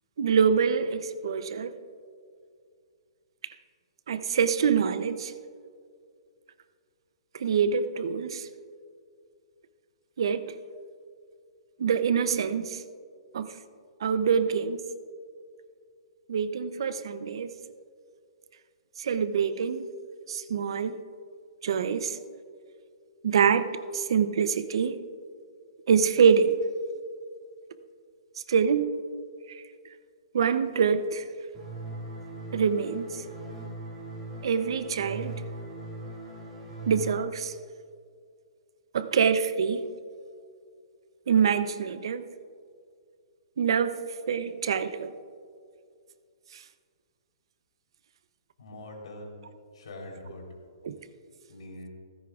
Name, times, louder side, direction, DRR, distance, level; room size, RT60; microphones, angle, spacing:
voice 1, 0.2-1.7 4.1-5.3 7.3-8.5 10.2-10.5 11.8-12.8 13.3-13.5 14.0-14.8 16.3-17.5 19.0-19.9 20.3-21.0 21.6-22.2 23.2-23.7 23.9-25.0 25.9-26.6 28.5-28.9 29.5-29.6 30.3-31.3 32.5-33.2 34.4-35.3 36.9-37.5 38.9-39.8 41.3-42.3 43.6-44.0 44.3-45.1 46.5-46.6 50.8-51.0, right 6 dB, 55° right, 12 dB, 0.6 m, -25 dB
sound 1, 31.5-37.1, right 2 dB, 15° right, 2.0 m, -40 dB
voice 2, 48.6-49.4 49.7-50.5 51.5-51.9, left 1 dB, 75° left, 1 dB, 3.5 m, -43 dB
17.0 x 15.0 x 2.4 m, 2.2 s
hypercardioid pair, 175°, 3 cm